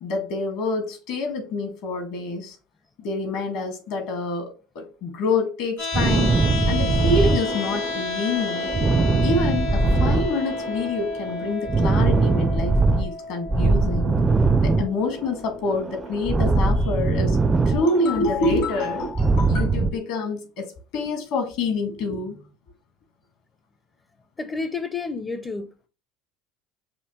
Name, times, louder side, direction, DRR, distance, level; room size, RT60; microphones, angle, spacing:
voice 1, 0.0-2.6 3.0-6.4 6.7-8.7 9.2-14.2 14.6-17.4 17.7-22.4, left 3 dB, 65° left, 1.7 m, -27 dB
sound 1, 5.8-17.8, left 4 dB, 90° left, 2.4 m, -32 dB
sound 2, 5.9-8.0 8.3-10.9 11.1-13.1 13.5-15.4 15.7-18.2 18.5-19.9, right 3 dB, 20° right, 0.4 m, -21 dB
voice 2, 24.4-25.9, left 4 dB, 20° left, 0.6 m, -30 dB
6.3 x 2.8 x 3.0 m
hypercardioid pair, 75°, 0 cm